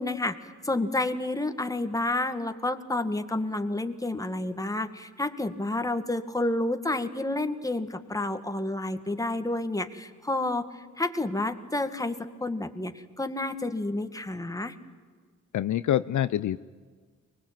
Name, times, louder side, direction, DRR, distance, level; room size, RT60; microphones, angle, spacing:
voice 1, 0.0-14.7, left 2 dB, 10° left, 8 dB, 1.9 m, -30 dB
voice 2, 15.5-16.6, left 11 dB, 65° left, 14 dB, 0.6 m, -26 dB
24.0 x 20.0 x 9.0 m, 1.6 s
cardioid pair, 75°, 32 cm